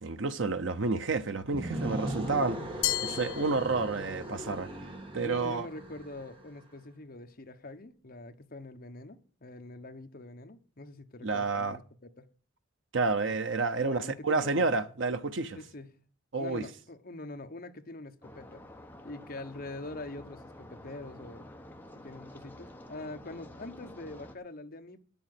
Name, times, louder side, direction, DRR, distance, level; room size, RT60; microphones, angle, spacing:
voice 1, 0.0-2.6 3.0-4.7 5.1-5.7 11.2-11.8 12.9-15.6 16.3-16.7, right 3 dB, 70° right, 0.8 m, -30 dB
sound 1, 1.4-6.4, right 1 dB, 25° right, 1.8 m, -38 dB
Glass, 2.8-4.3, left 15 dB, 85° left, 1.2 m, -34 dB
voice 2, 5.1-12.3 13.8-14.7 15.5-16.0 16.4-18.6 19.0-21.5 22.0-25.0, left 2 dB, 50° left, 1.1 m, -44 dB
sound 2, 18.2-24.4, left 1 dB, 10° left, 1.0 m, -49 dB
9.6 x 7.1 x 7.9 m
head